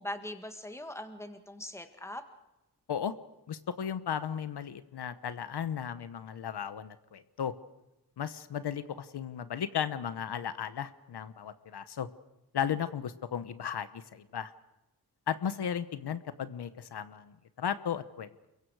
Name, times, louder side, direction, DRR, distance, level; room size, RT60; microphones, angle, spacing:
voice 1, 0.0-2.2, left 1 dB, 5° left, 7 dB, 1.7 m, -41 dB
voice 2, 3.5-7.5 8.2-12.1 12.5-14.5 15.3-18.5, left 8 dB, 75° left, 12 dB, 1.1 m, -35 dB
29.0 x 23.0 x 4.8 m, 0.98 s
wide cardioid pair, 130°, 40 cm